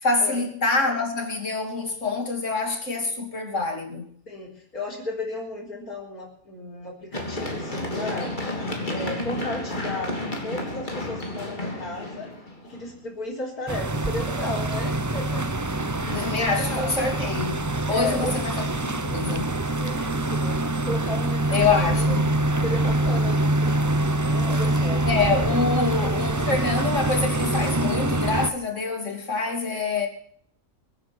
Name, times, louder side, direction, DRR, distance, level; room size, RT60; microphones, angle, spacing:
voice 1, 0.0-4.1 16.1-17.6 17.9-19.6 21.5-22.4 25.0-30.1, left 4 dB, 50° left, 3.0 m, -26 dB
voice 2, 4.3-8.3 8.9-12.3 12.6-15.5 16.1-16.9 17.9-18.4 19.3-21.7 22.0-22.2 22.6-23.8 24.2-25.1 25.6-25.8, left 2 dB, 75° left, 4.5 m, -34 dB
Run, 7.1-13.0 14.8-16.3, left 1 dB, 30° left, 3.1 m, -32 dB
sound 1, 13.7-28.5, right 2 dB, 25° right, 0.4 m, -25 dB
23.5 x 9.6 x 6.0 m
omnidirectional pair, 1.6 m